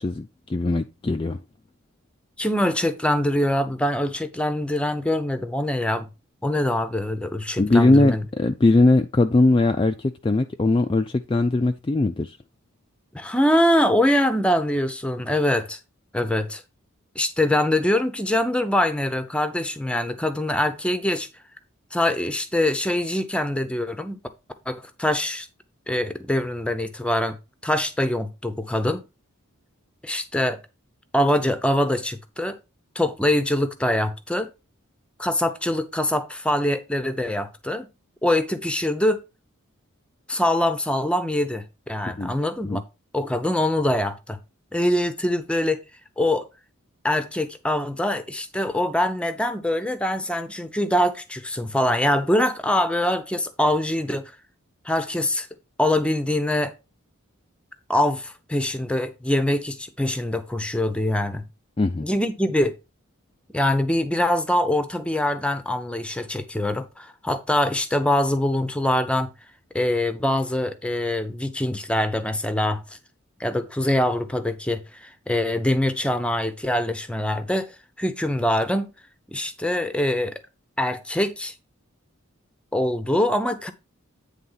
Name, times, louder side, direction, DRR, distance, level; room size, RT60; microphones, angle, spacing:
voice 1, 0.0-1.4 7.6-12.4 42.2-42.3 42.6-42.8 61.8-62.1, left 2 dB, 25° left, 0.3 m, -20 dB
voice 2, 2.4-6.1 6.4-8.2 13.1-15.8 16.1-16.6 17.1-21.3 21.9-24.2 24.7-25.5 25.9-27.4 27.6-29.0 30.0-30.6 31.1-32.6 32.9-34.5 35.2-37.9 38.2-39.2 40.3-42.8 43.1-44.4 44.7-45.8 46.2-46.5 47.0-54.3 54.8-55.5 55.8-56.7 57.9-61.4 62.0-62.8 63.5-69.3 69.7-73.0 73.4-78.9 79.3-80.4 80.8-81.5 82.7-83.7, left 1 dB, 5° left, 0.7 m, -24 dB
9.3 x 3.6 x 5.6 m
head